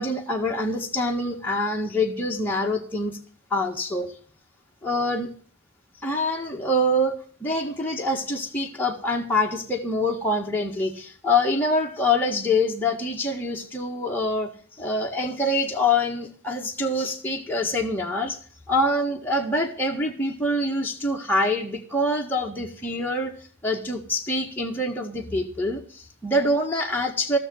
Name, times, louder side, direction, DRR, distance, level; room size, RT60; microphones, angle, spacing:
voice 1, 0.0-3.2 3.5-4.1 4.8-5.3 6.0-18.4 18.7-23.3 23.6-27.4, left 1 dB, 10° left, -1 dB, 1.6 m, -25 dB
16.0 x 6.7 x 8.8 m, 0.43 s
head